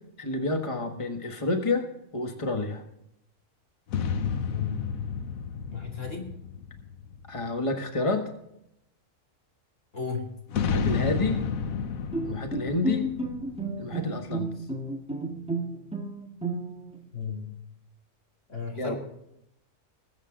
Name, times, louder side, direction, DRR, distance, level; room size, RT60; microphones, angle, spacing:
voice 1, 0.2-2.8 7.3-8.3 10.7-11.4 12.2-13.1 13.8-14.5 18.8-19.0, left 2 dB, 25° left, 5 dB, 1.5 m, -29 dB
sound 1, 3.9-7.6 10.5-14.3, left 6 dB, 80° left, 1.3 m, -31 dB
voice 2, 4.5-4.9 5.7-6.3 9.9-10.3 17.1-17.5 18.5-19.0, left 5 dB, 65° left, 0 dB, 3.0 m, -34 dB
Bowed string instrument, 12.1-17.0, right 1 dB, 5° right, 1.6 m, -32 dB
20.5 x 8.3 x 3.8 m, 0.81 s
omnidirectional pair, 1.4 m